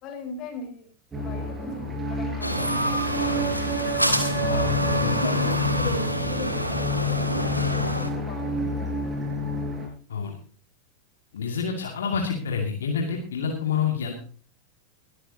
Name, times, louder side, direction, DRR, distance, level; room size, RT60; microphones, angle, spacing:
voice 1, 0.0-3.7 4.5-8.8, left 4 dB, 35° left, 4 dB, 4.8 m, -40 dB
sound 1, 1.1-9.9, left 2 dB, 15° right, 5.0 m, -29 dB
sound 2, 2.4-8.1, equal, 90° right, 1.7 m, -27 dB
voice 2, 4.4-4.7 5.0-5.2 10.1-10.3 11.3-14.1, left 6 dB, 65° left, 1 dB, 2.5 m, -28 dB
21.0 x 13.0 x 2.9 m, 0.42 s
figure-of-eight pair, 90°, 0 cm